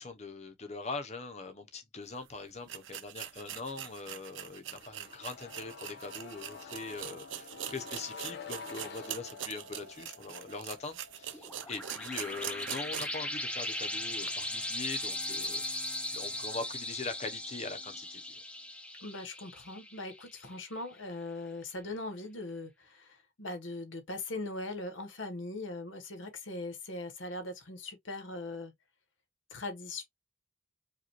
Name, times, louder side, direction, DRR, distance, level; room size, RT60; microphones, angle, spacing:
voice 1, 0.0-18.4, left 3 dB, 35° left, 0.8 m, -42 dB
sound 1, 2.1-2.2 2.7-13.3 13.6-13.7 14.2-14.3, right 11 dB, 75° right, 0.5 m, -43 dB
sound 2, 4.8-16.6 16.9-17.0, left 5 dB, 60° left, 1.0 m, -50 dB
sound 3, 11.3-20.5, left 1 dB, 5° left, 0.6 m, -38 dB
voice 2, 19.0-28.7 29.5-30.0, left 2 dB, 85° left, 1.3 m, -40 dB
5.0 x 2.5 x 3.0 m
head